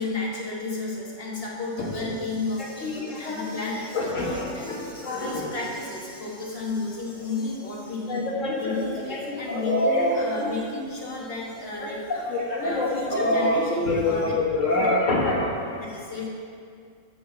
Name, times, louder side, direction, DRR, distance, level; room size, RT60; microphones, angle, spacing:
voice 1, 0.0-8.2 8.6-12.2 12.6-14.3 14.8-14.9 15.2-15.3 15.6-16.3, left 3 dB, 45° left, -3 dB, 1.7 m, -33 dB
voice 2, 2.6-3.5 3.9-5.5 8.1-8.8 9.1-10.5 11.8-15.7, left 1 dB, 65° left, -2 dB, 1.9 m, -26 dB
7.3 x 6.7 x 7.2 m, 2.3 s
omnidirectional pair, 1.4 m